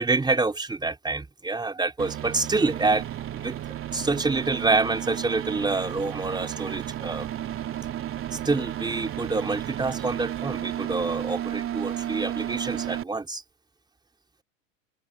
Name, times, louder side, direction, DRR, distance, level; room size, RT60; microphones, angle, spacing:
voice 1, 0.0-3.1 3.3-3.6 3.9-7.3 8.3-13.4, right 3 dB, 10° right, 3.9 m, -27 dB
sound 1, 2.0-13.0, right 11 dB, 30° right, 3.5 m, -33 dB
hypercardioid pair, 105°, 40 cm